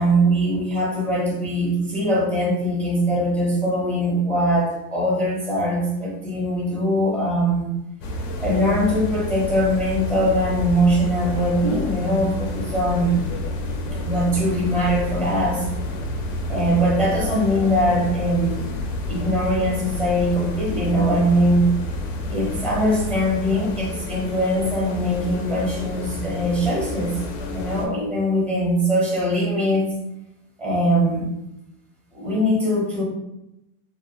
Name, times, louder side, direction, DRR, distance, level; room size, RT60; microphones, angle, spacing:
voice 1, 0.0-7.8 8.4-13.2 14.0-15.7 16.5-18.8 19.1-21.7 22.3-27.2 27.5-29.9 30.6-31.3 32.1-33.0, equal, 5° left, -4 dB, 0.5 m, -21 dB
sound 1, 8.0-27.9, left 1 dB, 70° left, 0.6 m, -29 dB
2.6 x 2.0 x 2.8 m, 0.88 s
supercardioid pair, 115°, 45 cm